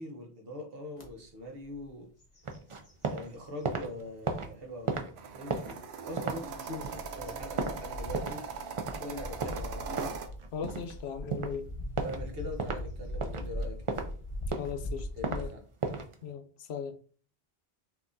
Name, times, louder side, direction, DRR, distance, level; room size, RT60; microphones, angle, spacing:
voice 1, 0.0-2.1 3.1-5.0 5.3-8.4 9.0-9.9 12.0-14.0 15.2-15.6, left 1 dB, 60° right, 1.1 m, -42 dB
sound 1, 1.0-1.1 1.6-1.9 2.2-3.7 4.3-4.4 6.1-15.5, left 1 dB, 35° left, 1.0 m, -41 dB
sound 2, 2.4-3.3 3.5-8.5 8.8-9.0 9.4-11.0 11.3-11.6 12.0-12.2 12.6-12.8 13.2-14.1 14.4-15.4 15.8-16.1, right 4 dB, 45° right, 0.4 m, -34 dB
sound 3, 5.2-10.3, right 6 dB, 80° right, 0.9 m, -40 dB
voice 2, 10.5-11.7 14.6-15.5 16.2-17.0, left 7 dB, 75° left, 0.8 m, -38 dB
5.8 x 2.9 x 2.6 m
omnidirectional pair, 1.1 m